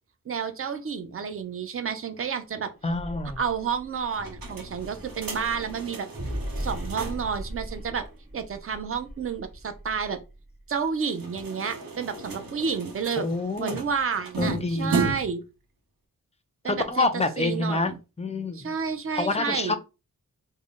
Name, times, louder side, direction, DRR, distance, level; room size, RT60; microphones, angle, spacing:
voice 1, 0.3-2.7 3.4-6.1 6.6-8.1 8.3-10.2 10.7-13.3 13.6-15.4 16.6-17.1 17.4-18.0 18.5-19.7, right 6 dB, 40° right, 9 dB, 0.5 m, -30 dB
sound 1, 2.7-10.8, equal, 20° right, 1.4 m, -39 dB
voice 2, 2.8-3.4 13.2-13.8 14.4-15.2 16.6-17.9 18.2-18.7 19.1-19.7, left 3 dB, 20° left, 9 dB, 0.4 m, -27 dB
sound 2, 4.1-7.4 7.7-7.8 8.0-8.1 10.9-15.5, right 4 dB, 85° right, 0.9 m, -35 dB
3.6 x 2.1 x 3.7 m, 0.28 s
wide cardioid pair, 175°, 34 cm